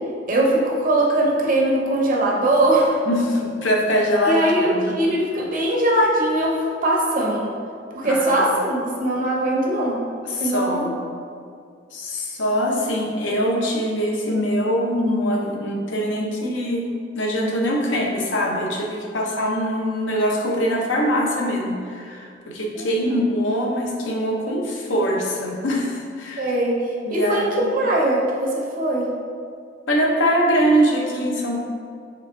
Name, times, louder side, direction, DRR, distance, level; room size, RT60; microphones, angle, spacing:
voice 1, 0.3-3.0 4.2-6.6 6.8-7.5 7.9-10.0 10.4-10.9 22.8-23.2 26.4-29.1, right 1 dB, 45° right, -2 dB, 0.7 m, -21 dB
voice 2, 3.1-5.0 8.0-8.4 10.3-11.0 11.9-16.9 17.1-26.5 27.0-27.5 29.9-31.6, equal, 80° left, -1 dB, 0.7 m, -23 dB
4.1 x 3.5 x 3.2 m, 2.2 s
head